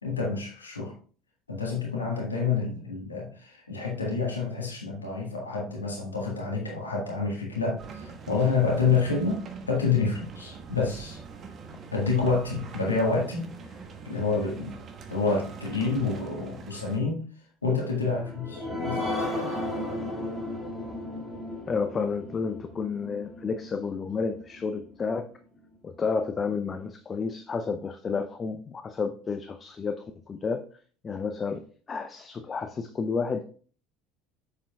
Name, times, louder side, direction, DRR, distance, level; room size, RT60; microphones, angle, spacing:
voice 1, 0.0-0.9 1.5-11.2 11.9-13.5 14.0-14.8 15.1-17.3 17.6-19.1, left 4 dB, 80° left, -1 dB, 1.6 m, -28 dB
sound 1, 7.8-17.0, right 5 dB, 40° right, 1.2 m, -44 dB
sound 2, 18.0-25.1 25.5-25.6 26.0-26.1, left 1 dB, 10° right, 2.1 m, -35 dB
voice 2, 21.7-25.3 25.8-30.7 31.0-33.4, left 5 dB, 30° left, 8 dB, 0.6 m, -31 dB
7.3 x 6.8 x 2.3 m, 0.42 s
figure-of-eight pair, 65°, 0 cm